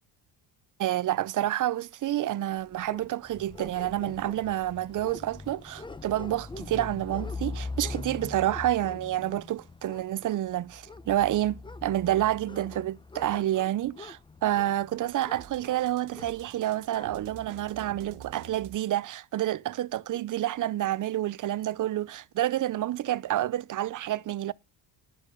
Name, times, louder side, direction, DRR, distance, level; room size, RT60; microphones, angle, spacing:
voice 1, 0.8-24.5, right 13 dB, 40° right, 0.5 m, -29 dB
sound 1, 2.6-17.1, left 3 dB, 10° left, 0.6 m, -42 dB
sound 2, 15.2-18.8, right 9 dB, 80° right, 1.2 m, -47 dB
11.0 x 5.2 x 5.2 m
cardioid pair, 90°, 48 cm